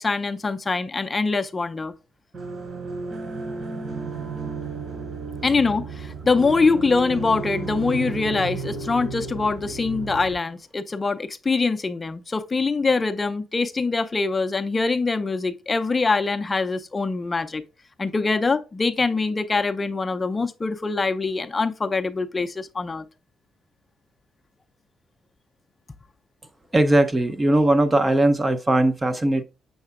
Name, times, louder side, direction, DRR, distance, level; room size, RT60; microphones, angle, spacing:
voice 1, 0.0-1.9 5.4-17.6 18.0-23.1, left 4 dB, 25° left, 0.5 m, -24 dB
sound 1, 2.3-10.3, right 4 dB, 45° right, 3.4 m, -33 dB
voice 2, 26.7-29.4, right 1 dB, 20° right, 0.7 m, -19 dB
7.0 x 6.6 x 2.4 m
cardioid pair, 90°, 0 cm